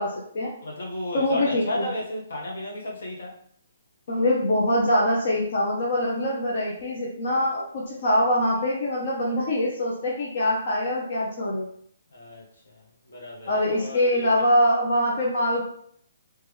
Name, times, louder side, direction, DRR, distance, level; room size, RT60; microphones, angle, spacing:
voice 1, 0.0-0.5 1.1-1.8 4.1-11.7 13.5-15.6, left 1 dB, 60° left, -4 dB, 0.9 m, -24 dB
voice 2, 0.6-3.4 12.1-14.4, left 1 dB, 75° left, -2 dB, 1.3 m, -34 dB
3.3 x 3.2 x 3.4 m, 0.64 s
hypercardioid pair, 150°, 0 cm